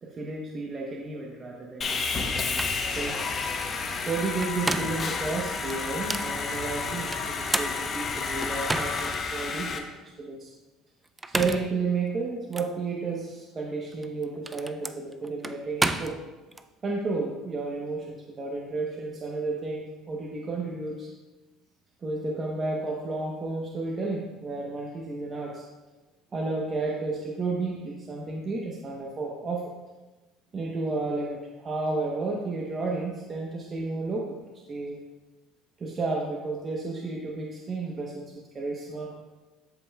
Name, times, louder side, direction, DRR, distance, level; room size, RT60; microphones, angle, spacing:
voice 1, 0.0-2.5 2.9-3.2 4.1-10.5 11.3-16.2 16.8-21.1 22.0-25.6 26.3-29.7 30.5-34.4 34.7-35.0 35.8-38.3 38.5-39.1, right 3 dB, 35° right, -1 dB, 1.0 m, -32 dB
Sawing, 1.8-9.8, left 4 dB, 35° left, 0.9 m, -31 dB
sound 1, 2.2-2.3 2.6-2.8 4.2-5.1 5.7-6.3 7.1-9.2 9.7-9.8 11.1-11.8 12.5-12.7 13.9-16.6, right 2 dB, 15° right, 0.4 m, -31 dB
13.0 x 5.5 x 2.3 m, 1.2 s
supercardioid pair, 100°, 0 cm